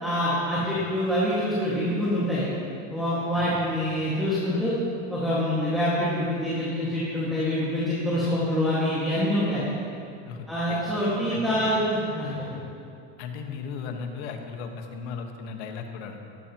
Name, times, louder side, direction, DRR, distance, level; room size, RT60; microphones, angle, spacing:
voice 1, 0.0-2.5 2.9-4.7 5.1-9.6 10.5-12.6, equal, ahead, -10 dB, 2.0 m, -26 dB
voice 2, 10.3-10.8 11.3-11.8 12.3-12.5 13.2-16.2, left 6 dB, 70° left, 4 dB, 1.6 m, -37 dB
19.5 x 13.5 x 3.1 m, 2.5 s
cardioid pair, 180°, 35 cm